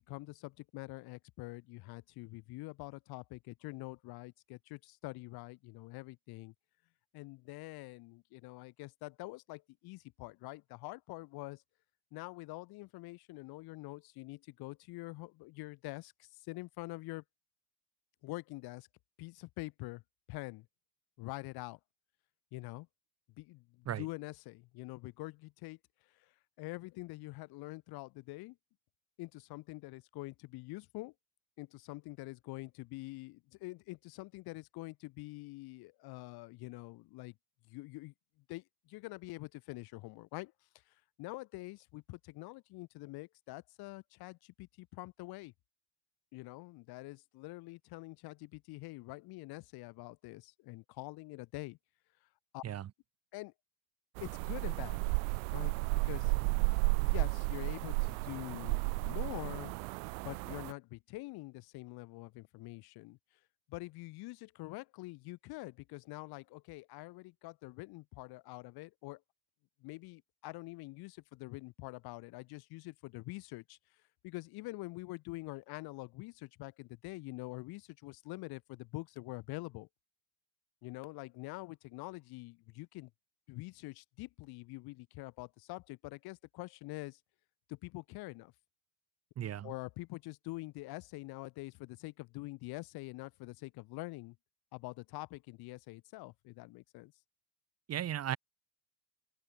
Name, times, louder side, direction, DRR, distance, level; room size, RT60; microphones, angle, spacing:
voice 1, 0.1-6.5 7.1-11.6 12.1-17.2 18.2-18.9 19.2-20.0 20.3-20.7 21.2-21.8 22.5-22.9 23.4-25.8 26.2-26.3 26.6-28.6 29.2-31.1 31.6-37.3 37.7-38.1 38.5-40.5 40.9-45.5 46.3-51.8 52.5-52.6 53.3-53.5 54.2-55.0 55.5-56.3 56.7-59.7 60.2-63.2 63.7-69.2 69.8-73.8 74.2-79.9 80.8-83.1 83.5-87.2 87.7-88.5 89.6-94.4 94.7-97.1, left 21 dB, 60° left, 2.5 m, -45 dB
sound 1, 54.2-60.7, right 31 dB, 75° right, 1.6 m, -33 dB
voice 2, 89.4-89.7 97.9-98.4, right 11 dB, 35° right, 1.3 m, -36 dB
open air
supercardioid pair, 95°, 43 cm